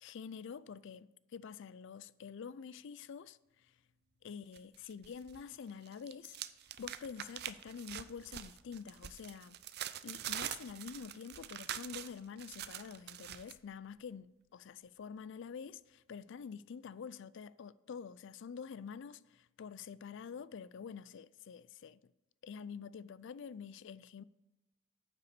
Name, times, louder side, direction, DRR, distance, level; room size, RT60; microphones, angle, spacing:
voice 1, 0.0-3.7 4.2-6.4 6.8-9.6 10.0-22.1 22.4-24.2, left 6 dB, 65° left, 0.4 m, -47 dB
sound 1, 4.5-5.4 5.7-13.5, right 11 dB, 55° right, 0.5 m, -44 dB
9.2 x 5.6 x 6.7 m
head